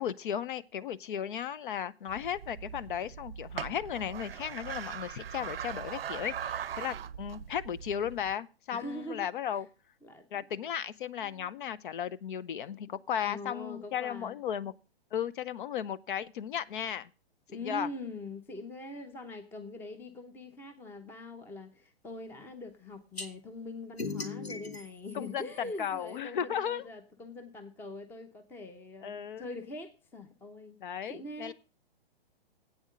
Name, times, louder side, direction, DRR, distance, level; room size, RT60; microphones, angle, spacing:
voice 1, 0.0-9.7 10.3-14.7 15.1-17.1 17.6-17.9 25.1-26.8 29.0-29.5 30.8-31.5, left 9 dB, 55° left, 0.7 m, -35 dB
sound 1, 2.1-8.3, right 9 dB, 70° right, 0.6 m, -41 dB
voice 2, 8.7-9.6 10.0-10.3 11.2-11.6 13.2-14.4 17.5-30.8 31.1-31.5, left 2 dB, 5° left, 0.7 m, -43 dB
sound 2, 23.2-23.3 24.0-26.2, left 4 dB, 85° left, 1.7 m, -40 dB
8.6 x 7.2 x 6.4 m
figure-of-eight pair, 125°, 30 cm